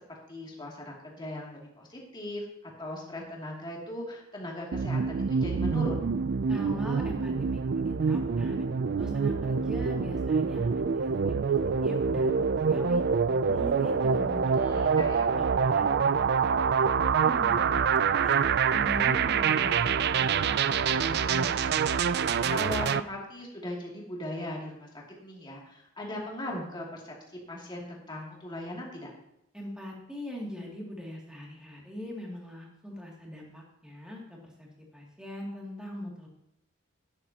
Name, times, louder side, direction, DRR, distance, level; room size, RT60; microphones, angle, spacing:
voice 1, 0.3-6.0 14.5-15.3 22.5-24.9 25.2-27.1 27.5-29.1, left 1 dB, 20° left, -2 dB, 2.6 m, -38 dB
sound 1, 4.7-23.0, right 6 dB, 50° right, 0.4 m, -26 dB
voice 2, 6.5-8.7 9.0-13.0 13.5-15.0 15.3-18.3 18.7-21.6 29.5-34.7 34.9-36.3, equal, 5° right, -2 dB, 2.5 m, -41 dB
12.0 x 11.0 x 2.9 m, 0.83 s
head